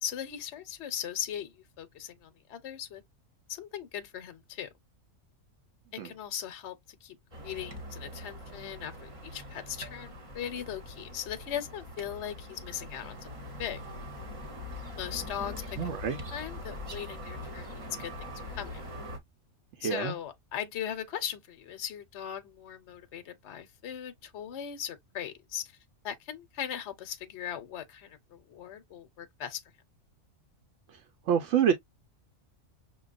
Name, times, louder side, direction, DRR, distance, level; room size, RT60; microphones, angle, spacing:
voice 1, 0.0-3.0 3.5-4.7 5.9-6.8 7.0-7.2 7.4-13.3 13.6-13.8 14.9-15.8 16.3-18.3 18.5-18.8 19.8-25.7 26.0-29.6, left 10 dB, 65° left, 0.9 m, -39 dB
sound 1, 7.3-19.2, left 1 dB, 30° right, 0.9 m, -42 dB
voice 2, 15.8-16.2 19.8-20.1 30.9-31.7, right 8 dB, 70° right, 0.9 m, -27 dB
6.0 x 2.3 x 2.4 m
omnidirectional pair, 1.3 m